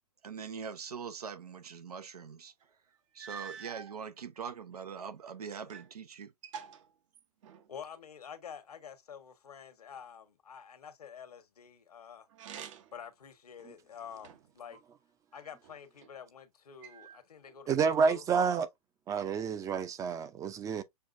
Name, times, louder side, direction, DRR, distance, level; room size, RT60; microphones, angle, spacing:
voice 1, 0.2-2.5 3.1-6.3, right 6 dB, 85° right, 0.9 m, -42 dB
sound 1, 2.6-2.7 3.2-4.0 4.7-5.9 6.2-7.7 12.3-13.1 13.6-14.6 15.3-16.1 16.8-17.6, right 7 dB, 55° right, 0.9 m, -48 dB
voice 2, 7.7-12.3 12.9-14.8 15.3-18.2, left 7 dB, 85° left, 1.3 m, -48 dB
voice 3, 17.7-18.7 19.1-20.8, right 6 dB, 15° right, 0.5 m, -29 dB
6.4 x 2.5 x 2.5 m
hypercardioid pair, 125°, 19 cm